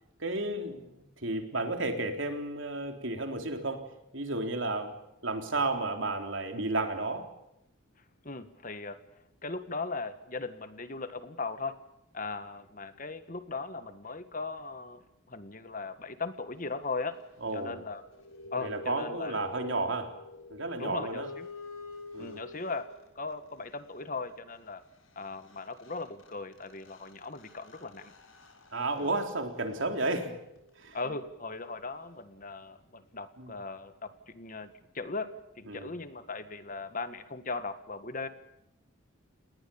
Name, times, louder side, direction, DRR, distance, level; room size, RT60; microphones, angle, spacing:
voice 1, 0.2-3.9 4.1-4.9 5.2-7.3 17.4-17.8 18.6-20.1 20.5-21.3 22.1-22.4 28.7-30.3 30.8-31.0 33.4-33.5 35.7-35.9, right 2 dB, 65° right, 5 dB, 3.8 m, -32 dB
voice 2, 8.2-9.0 9.4-11.8 12.1-15.0 15.3-17.2 17.5-18.0 18.5-19.4 20.8-21.5 22.2-22.9 23.1-24.8 25.1-28.1 29.0-29.2 30.9-38.3, left 3 dB, 40° left, 11 dB, 1.6 m, -38 dB
sound 1, 17.9-23.3 25.2-25.3 25.5-31.0, left 3 dB, 75° left, 6.0 m, -48 dB
29.5 x 20.0 x 7.2 m, 0.84 s
head